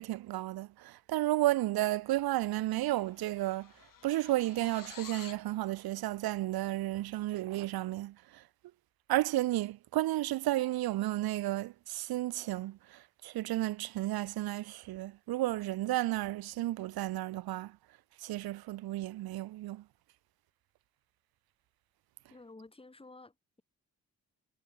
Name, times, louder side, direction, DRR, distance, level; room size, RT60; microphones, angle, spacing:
voice 1, 0.0-3.7 4.0-8.4 9.1-17.8 18.2-19.8, right 16 dB, 80° right, 0.7 m, -32 dB
sound 1, 2.3-2.5 2.8-5.5, left 8 dB, 60° left, 3.5 m, -51 dB
voice 2, 22.3-23.6, left 2 dB, 15° left, 2.2 m, -53 dB
cardioid pair, 70°, 37 cm